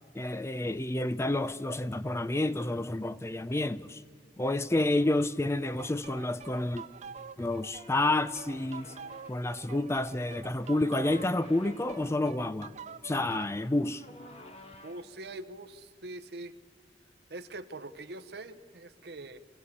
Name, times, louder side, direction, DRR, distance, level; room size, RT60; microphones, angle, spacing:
voice 1, 0.1-4.0 4.4-6.9 7.4-8.9 9.3-12.7 13.0-14.0, left 2 dB, 15° left, 0.4 m, -29 dB
sound 1, 5.8-13.6, right 6 dB, 40° right, 0.5 m, -46 dB
sound 2, 7.7-9.6 10.6-12.4 13.0-15.3, left 2 dB, 35° left, 1.3 m, -53 dB
voice 2, 14.8-16.5 17.3-19.4, right 2 dB, 65° right, 1.0 m, -43 dB
24.5 x 16.0 x 8.4 m
head